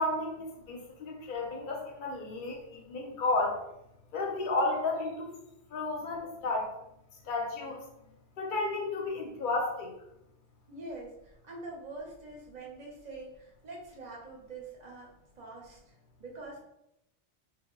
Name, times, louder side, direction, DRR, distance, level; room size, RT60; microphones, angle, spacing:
voice 1, 0.0-3.6 4.1-5.3 5.7-6.7 7.3-7.8 8.4-9.9, left 2 dB, 55° left, 0 dB, 0.7 m, -32 dB
voice 2, 10.7-15.9 16.2-16.6, right 2 dB, 45° right, -3 dB, 0.7 m, -45 dB
2.1 x 2.0 x 3.6 m, 0.82 s
omnidirectional pair, 1.2 m